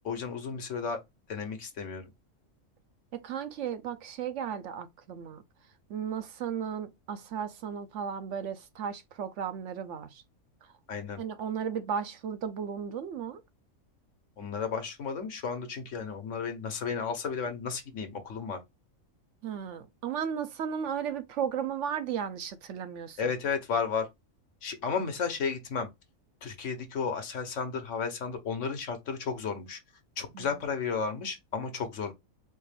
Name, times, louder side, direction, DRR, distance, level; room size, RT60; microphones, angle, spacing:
voice 1, 0.0-1.0 1.3-2.0 10.9-11.2 14.4-18.6 23.2-24.1 24.6-25.9 26.4-29.8 30.2-32.1, left 5 dB, 65° left, 1.2 m, -33 dB
voice 2, 3.1-5.4 5.9-10.2 11.2-13.4 19.4-23.3 30.3-30.6, right 8 dB, 70° right, 0.9 m, -35 dB
4.3 x 2.4 x 3.3 m
omnidirectional pair, 1.4 m